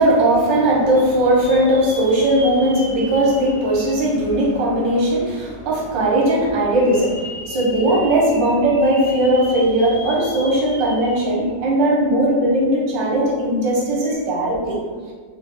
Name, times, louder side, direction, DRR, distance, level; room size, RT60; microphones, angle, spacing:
voice 1, 0.0-14.8, right 1 dB, 85° right, -4 dB, 1.5 m, -18 dB
sound 1, 0.9-4.9 5.4-5.5 6.6-11.5 11.9-12.0 14.0-14.1, left 2 dB, 80° left, 0.5 m, -37 dB
3.9 x 2.1 x 3.5 m, 1.5 s
omnidirectional pair, 1.9 m